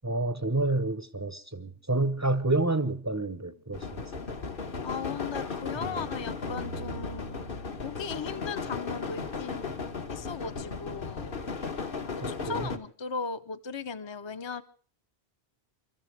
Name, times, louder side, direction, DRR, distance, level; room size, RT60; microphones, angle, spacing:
voice 1, 0.0-4.3 5.7-6.1 12.2-12.8, right 2 dB, 15° right, 0.8 m, -29 dB
sound 1, 3.7-12.8, left 4 dB, 55° left, 1.4 m, -36 dB
voice 2, 4.8-7.4 7.8-9.7 10.1-11.4 12.1-14.6, left 5 dB, 30° left, 0.7 m, -37 dB
sound 2, 6.5-9.7, right 5 dB, 70° right, 1.3 m, -45 dB
29.0 x 14.0 x 3.4 m
omnidirectional pair, 1.1 m